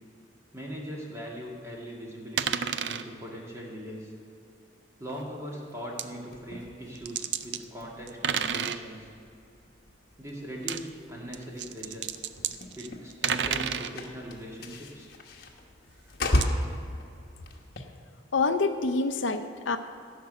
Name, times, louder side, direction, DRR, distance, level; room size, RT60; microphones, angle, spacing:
voice 1, 0.5-4.1 5.0-9.1 10.2-12.1 12.7-15.1, equal, 15° right, -3 dB, 2.1 m, -40 dB
sound 1, 2.4-3.0 5.1-5.2 6.0-6.1 7.0-7.6 8.1-8.8 10.5-10.8 11.3-13.9 16.4-16.5, right 8 dB, 60° right, 0.5 m, -30 dB
sound 2, 6.3-17.8, left 1 dB, 50° left, 1.2 m, -36 dB
voice 2, 18.3-19.8, left 3 dB, 70° left, 8 dB, 0.6 m, -26 dB
15.0 x 6.0 x 7.9 m, 2.5 s
head